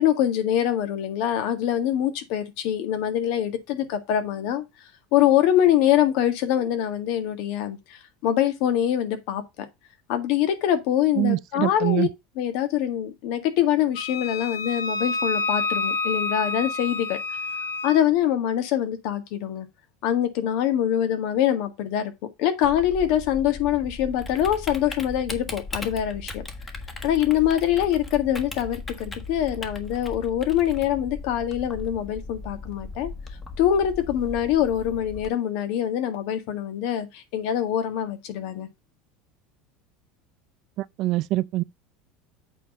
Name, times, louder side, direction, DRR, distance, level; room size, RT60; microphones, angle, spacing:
voice 1, 0.0-4.6 5.1-9.4 10.1-12.1 12.4-17.2 17.8-19.7 20.0-22.1 22.4-26.4 27.0-33.1 33.6-38.7, left 11 dB, 65° left, 1.8 m, -24 dB
voice 2, 11.2-12.1 40.8-41.6, right 17 dB, 50° right, 0.5 m, -24 dB
Wind instrument woodwind instrument, 14.0-18.0, left 3 dB, 85° left, 1.8 m, -28 dB
Typing, 22.6-35.3, left 3 dB, 15° left, 1.5 m, -38 dB
8.2 x 4.2 x 5.4 m
supercardioid pair, 135°, 0 cm